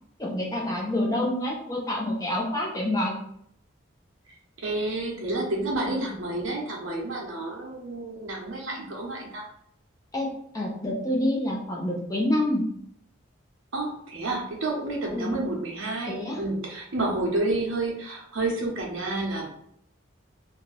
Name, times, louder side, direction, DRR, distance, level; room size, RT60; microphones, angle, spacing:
voice 1, 0.2-3.2 10.1-10.3 10.5-12.6 15.1-15.3 16.1-16.4, left 1 dB, 15° left, -2 dB, 0.5 m, -27 dB
voice 2, 4.3-9.5 13.7-19.5, right 2 dB, 75° right, -1 dB, 0.8 m, -30 dB
2.6 x 2.2 x 3.2 m, 0.69 s
head